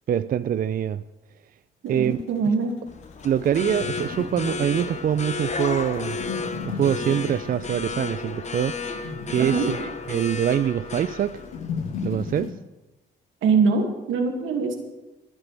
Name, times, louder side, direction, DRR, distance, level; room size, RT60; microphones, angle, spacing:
voice 1, 0.1-1.0 1.9-2.2 3.2-6.2 6.6-11.4 12.0-12.6, right 9 dB, 45° right, 0.4 m, -25 dB
voice 2, 1.8-2.7 9.4-9.7 13.4-14.8, right 5 dB, 80° right, 2.4 m, -23 dB
sound 1, 1.9-12.5, left 5 dB, 85° left, 1.8 m, -36 dB
sound 2, 2.9-12.4, left 4 dB, 35° left, 1.0 m, -33 dB
24.5 x 9.8 x 3.5 m
cardioid pair, 90°, 20 cm